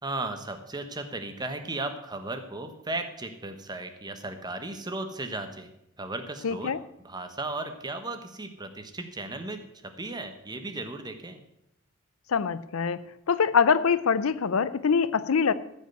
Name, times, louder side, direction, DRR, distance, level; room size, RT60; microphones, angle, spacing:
voice 1, 0.0-5.7 6.0-6.7 7.0-11.4, right 2 dB, 20° right, 7 dB, 1.2 m, -36 dB
voice 2, 6.4-6.8 12.3-15.5, left 6 dB, 90° left, 15 dB, 0.6 m, -24 dB
14.5 x 5.5 x 7.9 m, 0.81 s
head